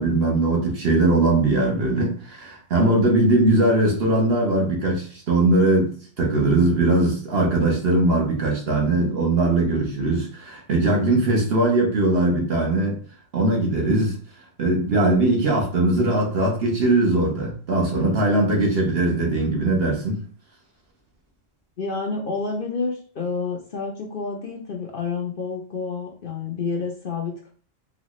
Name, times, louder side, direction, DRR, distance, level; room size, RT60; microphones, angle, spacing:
voice 1, 0.0-12.9 13.3-14.2 14.6-20.2, right 2 dB, 55° right, -1 dB, 1.1 m, -20 dB
voice 2, 18.0-18.3 21.8-27.5, left 4 dB, 50° left, 0 dB, 0.7 m, -29 dB
4.0 x 2.3 x 3.0 m, 0.43 s
omnidirectional pair, 1.3 m